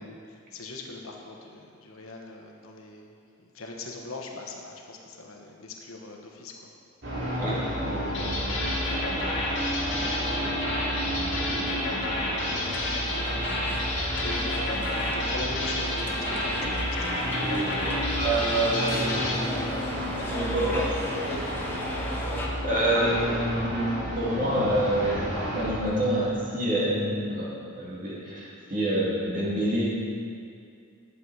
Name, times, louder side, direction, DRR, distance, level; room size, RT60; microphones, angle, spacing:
voice 1, 0.3-6.5 14.2-17.1 21.3-21.4, left 2 dB, 85° left, 1 dB, 1.2 m, -40 dB
sound 1, 7.0-25.8, equal, 55° right, 2.5 m, -31 dB
voice 2, 7.4-8.5 9.9-10.5 18.1-20.0 20.3-20.9 22.6-29.9, right 1 dB, 40° right, -6 dB, 2.4 m, -28 dB
sound 2, 8.1-19.4, left 2 dB, 60° left, 1.9 m, -31 dB
sound 3, 12.6-22.5, left 1 dB, 10° left, 0.9 m, -39 dB
11.0 x 7.3 x 4.7 m, 2.4 s
head